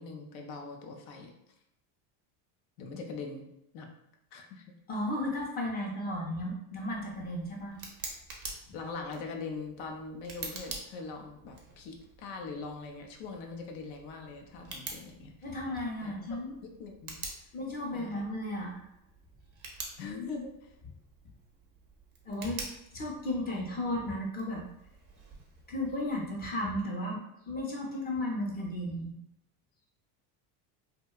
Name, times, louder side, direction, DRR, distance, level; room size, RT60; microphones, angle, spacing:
voice 1, 0.0-1.3 2.8-3.5 3.7-3.9 4.3-4.6 8.7-15.5 16.0-16.3 16.6-17.2 17.9-18.2 20.0-20.7, left 4 dB, 85° left, 3 dB, 0.6 m, -42 dB
voice 2, 4.9-7.8 15.4-16.5 17.5-18.8 22.2-22.6 22.9-24.6 25.7-29.1, left 1 dB, 25° left, -2 dB, 0.5 m, -34 dB
Tick, 6.8-26.5, right 4 dB, 30° right, 0.4 m, -48 dB
2.8 x 2.1 x 2.2 m, 0.83 s
cardioid pair, 145°, 41 cm